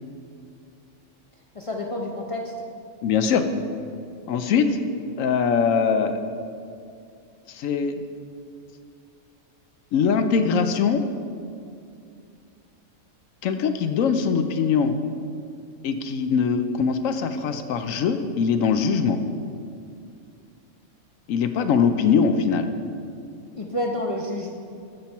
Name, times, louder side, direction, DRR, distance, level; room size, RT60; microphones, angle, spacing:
voice 1, 1.5-2.5 23.5-24.5, left 1 dB, 35° left, 0 dB, 0.5 m, -29 dB
voice 2, 3.0-3.4 4.3-4.8 5.2-6.2 7.5-8.0 9.9-11.0 13.4-14.9 15.8-19.2 21.3-22.7, left 6 dB, 70° left, 9 dB, 0.9 m, -22 dB
13.0 x 5.8 x 4.4 m, 2.4 s
omnidirectional pair, 1.5 m